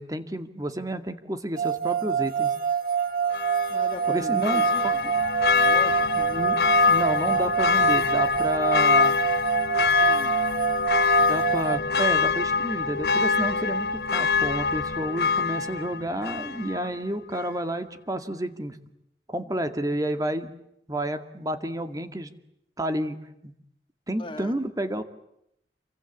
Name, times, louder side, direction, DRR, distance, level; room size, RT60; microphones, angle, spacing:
voice 1, 0.0-2.5 4.1-5.1 6.2-6.6 6.9-9.2 11.3-18.8 19.3-20.5 20.9-22.3 22.8-23.2 23.4-23.5 24.1-25.0, right 1 dB, 20° right, 9 dB, 2.2 m, -30 dB
sound 1, 1.6-11.8, right 8 dB, 55° right, 1.6 m, -26 dB
Church bell, 3.3-17.0 17.3-17.4, left 5 dB, 60° left, 1.1 m, -24 dB
voice 2, 3.7-5.0 5.5-6.1 9.8-10.4 24.2-24.6, left 1 dB, 30° left, 8 dB, 2.3 m, -38 dB
29.5 x 23.5 x 8.3 m, 0.78 s
head